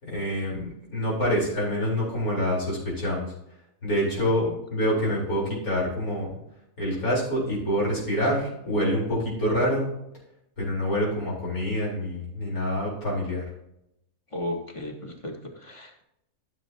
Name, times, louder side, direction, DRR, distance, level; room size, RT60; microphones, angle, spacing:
voice 1, 0.0-3.3 3.8-6.4 6.8-9.9 10.6-13.4, equal, 85° left, -5 dB, 4.6 m, -26 dB
voice 2, 14.3-16.0, left 1 dB, 20° left, 2 dB, 1.5 m, -35 dB
14.5 x 7.3 x 2.8 m, 0.82 s
omnidirectional pair, 1.5 m